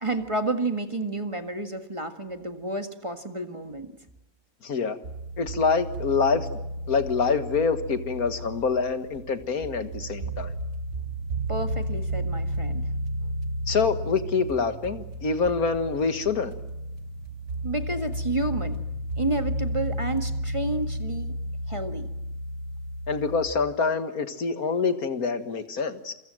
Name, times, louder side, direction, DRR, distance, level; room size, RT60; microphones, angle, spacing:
voice 1, 0.0-4.0 11.5-12.9 13.2-13.3 17.6-18.8 19.2-21.4 21.7-22.1, right 2 dB, 20° right, 6 dB, 1.8 m, -30 dB
voice 2, 4.6-5.0 5.4-6.5 6.9-10.5 13.7-16.5 23.1-26.1, left 5 dB, 90° left, 9 dB, 2.1 m, -26 dB
sound 1, 5.0-23.5, right 1 dB, 55° right, 1.8 m, -33 dB
28.0 x 24.0 x 7.7 m, 0.92 s
omnidirectional pair, 1.5 m